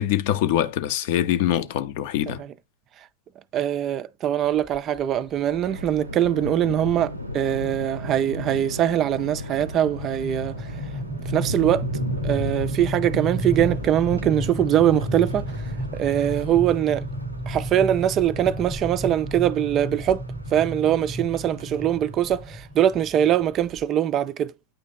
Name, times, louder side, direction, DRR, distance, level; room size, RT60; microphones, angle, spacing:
voice 1, 0.0-2.4, left 11 dB, 50° left, 0.6 m, -23 dB
voice 2, 3.5-10.8 11.3-11.9 12.2-17.1 17.5-20.2 20.5-24.5, right 11 dB, 30° right, 0.4 m, -22 dB
sound 1, 4.7-5.0 5.8-6.0 6.4-6.5 6.8-7.1 7.5-23.8, right 1 dB, ahead, 0.9 m, -32 dB
Thunder, 5.3-22.7, left 1 dB, 85° right, 0.5 m, -35 dB
9.0 x 3.1 x 3.8 m
figure-of-eight pair, 90°, 0 cm